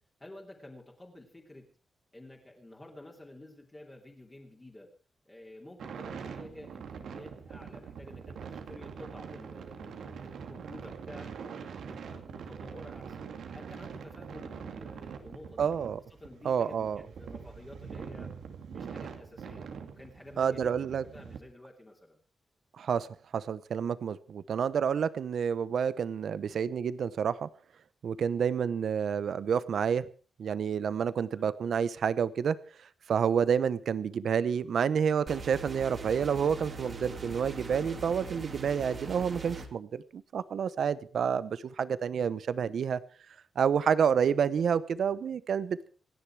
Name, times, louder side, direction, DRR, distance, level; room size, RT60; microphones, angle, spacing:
voice 1, 0.2-1.7 2.1-4.9 5.2-11.3 11.9-13.3 13.5-15.7 16.1-18.3 18.7-22.2 31.3-31.5 37.7-37.9, left 1 dB, 15° left, -2 dB, 3.0 m, -50 dB
sound 1, 5.8-21.4, right 6 dB, 85° right, 2.5 m, -43 dB
voice 2, 15.6-16.0 16.4-17.0 20.4-21.0 22.8-27.5 28.0-30.0 30.4-32.6 33.1-43.0 43.6-45.9, right 7 dB, 65° right, 16 dB, 0.8 m, -29 dB
sound 2, 35.3-39.7, right 3 dB, 35° right, 2.7 m, -41 dB
27.0 x 10.5 x 4.7 m, 0.39 s
wide cardioid pair, 160°, 0 cm